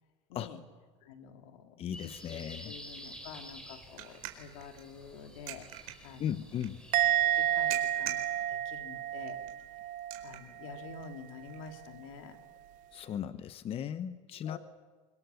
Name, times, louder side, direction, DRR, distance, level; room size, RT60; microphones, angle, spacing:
voice 1, 0.3-0.6 1.0-2.4 2.7-6.3 7.2-9.4 10.2-12.4 14.4-14.6, left 6 dB, 80° left, 5 dB, 3.1 m, -48 dB
voice 2, 1.8-2.7 6.2-6.8 12.9-14.6, left 9 dB, 35° left, 12 dB, 1.0 m, -37 dB
sound 1, 1.9-7.7, equal, 5° left, 4.7 m, -50 dB
sound 2, 2.2-13.5, right 13 dB, 80° right, 4.4 m, -48 dB
Musical instrument, 6.9-10.3 10.6-11.0, right 11 dB, 50° right, 1.0 m, -30 dB
29.5 x 25.0 x 7.1 m, 1.4 s
supercardioid pair, 125°, 17 cm